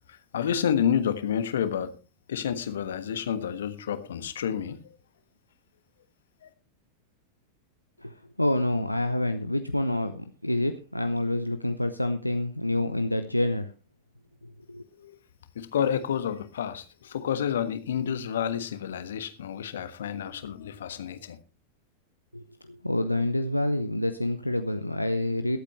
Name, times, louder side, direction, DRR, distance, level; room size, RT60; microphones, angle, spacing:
voice 1, 0.1-1.9 2.3-4.8 6.4-6.5 15.0-15.2 15.5-21.4, left 8 dB, 65° left, 1.4 m, -29 dB
voice 2, 8.0-13.7 14.7-14.8 22.3-25.6, left 1 dB, 85° left, 0.7 m, -27 dB
22.0 x 8.3 x 3.2 m
figure-of-eight pair, 90°, 0 cm